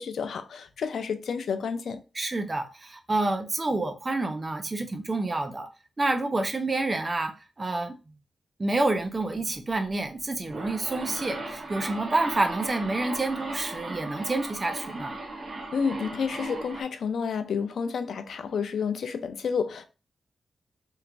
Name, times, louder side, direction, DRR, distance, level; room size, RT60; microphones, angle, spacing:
voice 1, 0.0-2.0 15.7-19.9, left 6 dB, 85° left, 0.4 m, -30 dB
voice 2, 2.1-5.7 6.0-7.9 8.6-15.1, right 2 dB, 25° right, 0.5 m, -28 dB
sound 1, 10.2-16.8, right 2 dB, 60° right, 1.0 m, -37 dB
3.1 x 2.5 x 3.3 m
wide cardioid pair, 130°, 0 cm